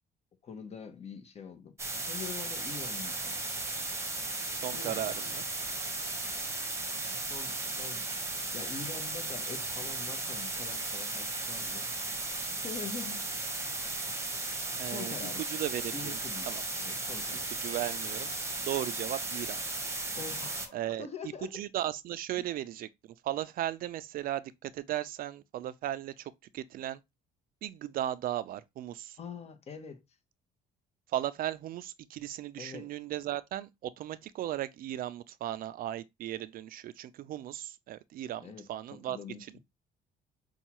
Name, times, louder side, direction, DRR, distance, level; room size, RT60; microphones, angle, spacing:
voice 1, 0.4-3.4 4.7-5.1 6.0-8.1 8.5-11.9 12.6-13.3 14.8-15.4 15.9-17.5 20.1-21.6 22.4-22.5 29.2-30.0 32.5-32.9 38.4-39.6, left 6 dB, 40° left, 0.9 m, -45 dB
sound 1, 1.8-20.7, right 2 dB, 15° right, 0.9 m, -36 dB
voice 2, 4.5-5.4 14.8-16.2 16.5-16.6 17.6-18.3 18.6-19.6 20.7-21.1 21.5-22.9 23.2-27.0 27.6-29.2 31.1-39.2, right 13 dB, 60° right, 0.4 m, -36 dB
5.5 x 2.3 x 2.9 m
cardioid pair, 110°, 17 cm